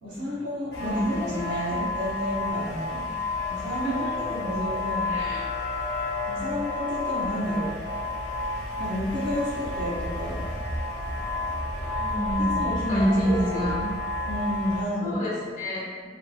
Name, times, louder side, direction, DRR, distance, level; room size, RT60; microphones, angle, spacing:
voice 1, 0.0-3.0 3.5-5.1 6.3-7.7 8.8-10.4 12.5-13.7 14.3-15.1, left 1 dB, 90° right, -11 dB, 0.9 m, -30 dB
sound 1, 0.7-14.8, left 2 dB, 65° left, 0.5 m, -31 dB
voice 2, 0.8-1.9 3.7-4.3 5.0-5.4 12.0-12.6 12.9-13.9 15.0-15.9, equal, 40° left, -8 dB, 0.8 m, -28 dB
2.9 x 2.2 x 2.3 m, 1.5 s
head